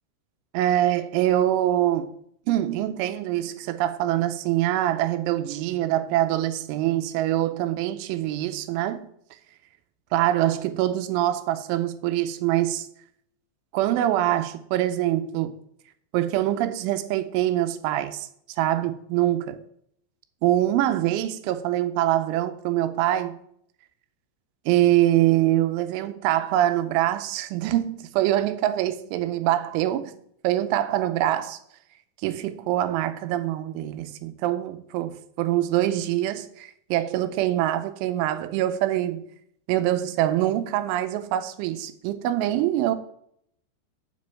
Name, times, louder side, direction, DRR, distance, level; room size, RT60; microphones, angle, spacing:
voice 1, 0.5-2.2 2.5-9.1 10.1-12.9 13.7-15.6 16.1-18.3 18.6-19.6 20.4-23.4 24.7-30.2 30.4-31.6 32.2-39.3 39.7-43.0, right 13 dB, 90° right, 3.2 m, -24 dB
7.8 x 5.3 x 7.5 m
omnidirectional pair, 5.5 m